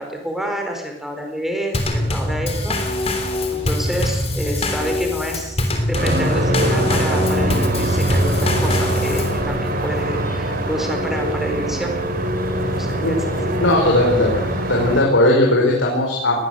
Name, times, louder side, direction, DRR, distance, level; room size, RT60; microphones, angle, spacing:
voice 1, 0.0-2.8 3.5-11.9 12.7-13.4, equal, ahead, 3 dB, 4.6 m, -28 dB
Drum kit / Snare drum / Bass drum, 1.7-9.4, left 1 dB, 35° left, 3.3 m, -23 dB
Krekels sprinkhanen en grasmaaier Lichterveldestraat, 5.9-15.0, right 1 dB, 50° right, 4.0 m, -22 dB
voice 2, 13.0-14.4 14.7-16.4, left 1 dB, 80° left, -2 dB, 5.5 m, -18 dB
21.0 x 18.5 x 8.1 m, 0.81 s
head